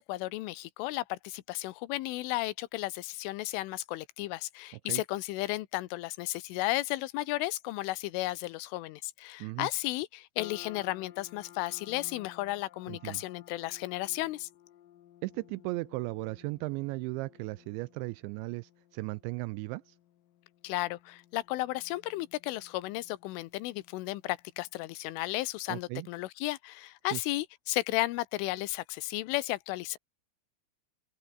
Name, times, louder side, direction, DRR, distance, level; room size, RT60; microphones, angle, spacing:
voice 1, 0.0-14.5 20.6-30.0, left 18 dB, 85° left, 3.5 m, -34 dB
sound 1, 10.4-24.8, left 12 dB, 65° left, 2.4 m, -56 dB
voice 2, 12.9-13.2 15.2-19.9 25.7-26.1 27.1-27.2, right 22 dB, 85° right, 2.7 m, -36 dB
open air
omnidirectional pair, 5.6 m